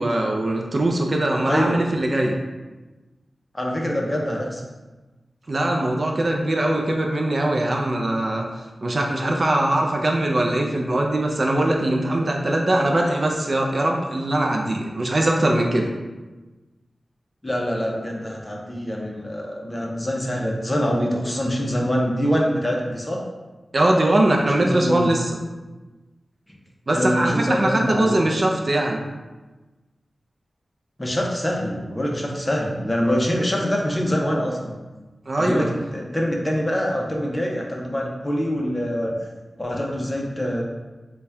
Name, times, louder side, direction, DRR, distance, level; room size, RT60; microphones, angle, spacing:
voice 1, 0.0-2.4 5.5-8.4 8.8-15.9 23.7-25.4 26.9-29.0 35.3-35.7, right 1 dB, 50° right, 1 dB, 0.5 m, -21 dB
voice 2, 1.5-1.8 3.5-4.6 17.4-23.2 24.5-25.2 26.9-28.3 31.0-34.8 35.4-39.2 39.6-40.6, equal, 20° left, -1 dB, 0.7 m, -25 dB
4.1 x 2.3 x 3.4 m, 1.2 s
wide cardioid pair, 80°, 0 cm